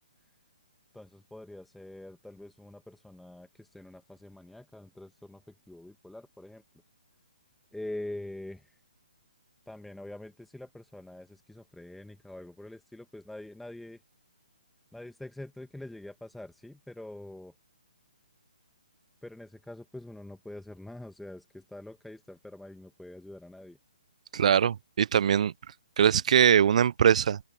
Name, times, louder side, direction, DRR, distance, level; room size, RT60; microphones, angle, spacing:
voice 1, 0.9-6.6 7.7-8.8 9.7-14.0 14.9-17.5 19.2-23.8, left 1 dB, ahead, 1.9 m, -44 dB
voice 2, 24.3-25.5 26.0-27.4, right 8 dB, 55° right, 0.5 m, -22 dB
open air
figure-of-eight pair, 135°, 4 cm